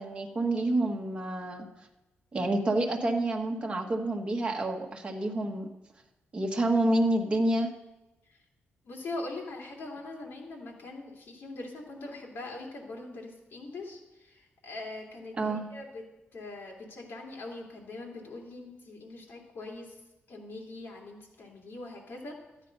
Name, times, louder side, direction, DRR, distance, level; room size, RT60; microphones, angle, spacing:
voice 1, 0.0-1.7 2.3-5.7 6.3-7.7 15.4-15.7, right 1 dB, 25° right, 1 dB, 1.3 m, -28 dB
voice 2, 8.8-16.0 16.3-20.0 20.3-22.3, left 2 dB, 60° left, -1 dB, 3.0 m, -42 dB
13.0 x 9.1 x 5.4 m, 1.0 s
wide cardioid pair, 170°, 4 cm